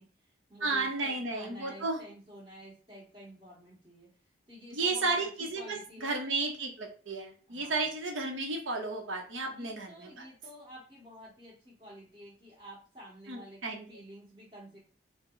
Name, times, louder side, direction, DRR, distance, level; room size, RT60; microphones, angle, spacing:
voice 1, 0.0-4.1 4.5-6.2 7.5-7.9 9.5-14.8, equal, 25° right, -8 dB, 1.7 m, -50 dB
voice 2, 0.6-2.0 4.7-10.2 13.3-13.9, right 3 dB, 85° right, 2 dB, 0.8 m, -33 dB
4.7 x 2.2 x 3.9 m, 0.40 s
head